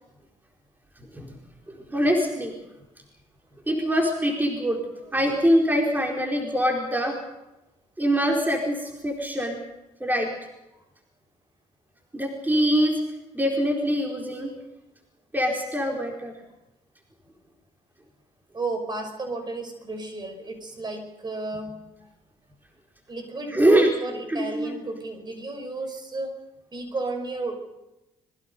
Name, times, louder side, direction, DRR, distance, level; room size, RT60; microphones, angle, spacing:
voice 1, 1.7-2.5 3.7-4.8 5.1-7.2 8.0-9.6 10.0-10.3 12.1-13.0 13.3-14.5 15.3-16.3 23.5-23.9 24.3-24.7, equal, 15° right, 0 dB, 4.6 m, -23 dB
voice 2, 18.5-22.1 23.1-26.4 26.7-27.6, right 3 dB, 30° right, 6 dB, 5.5 m, -32 dB
25.5 x 22.0 x 5.4 m, 0.98 s
supercardioid pair, 75°, 14 cm